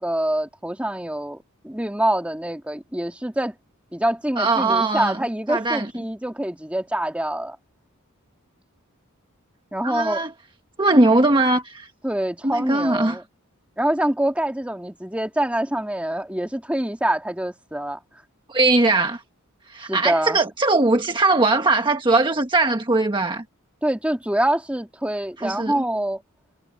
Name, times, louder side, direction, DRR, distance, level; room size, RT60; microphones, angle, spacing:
voice 1, 0.0-3.5 3.9-7.6 9.7-10.2 12.0-13.2 13.8-18.0 19.8-20.4 23.8-26.2, right 1 dB, 5° right, 2.0 m, -25 dB
voice 2, 4.4-5.2 5.5-5.9 9.8-10.3 10.8-11.9 12.4-13.2 18.5-19.2 19.7-23.4 25.4-25.7, right 2 dB, 25° right, 1.3 m, -20 dB
head